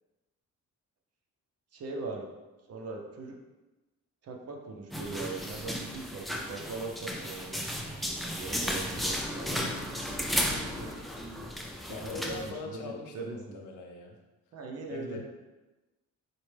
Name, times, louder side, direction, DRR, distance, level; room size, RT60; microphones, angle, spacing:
voice 1, 1.7-2.3 2.7-3.4 4.2-7.7 8.3-11.1 11.9-13.6 14.5-15.2, right 3 dB, 55° right, 1 dB, 0.7 m, -41 dB
sound 1, 4.9-12.5, equal, ahead, 0.3 m, -34 dB
voice 2, 11.9-14.2 14.9-15.2, left 3 dB, 80° left, 2 dB, 0.7 m, -41 dB
4.0 x 2.1 x 3.3 m, 1.1 s
cardioid pair, 90°, 30 cm